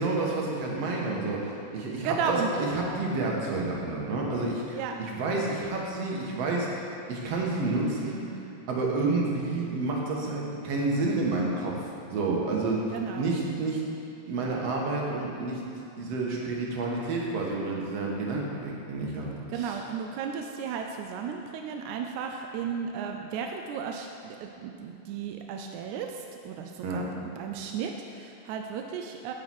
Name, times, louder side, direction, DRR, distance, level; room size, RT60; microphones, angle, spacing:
voice 1, 0.0-6.7 7.1-8.2 8.7-13.8 14.3-15.6 16.0-19.8 26.8-27.1, right 3 dB, 60° right, -2 dB, 2.3 m, -29 dB
voice 2, 2.0-2.5 4.7-4.9 12.9-13.4 19.5-27.0 27.4-29.3, right 6 dB, 85° right, 3 dB, 2.0 m, -34 dB
9.4 x 4.9 x 7.6 m, 2.8 s
omnidirectional pair, 3.3 m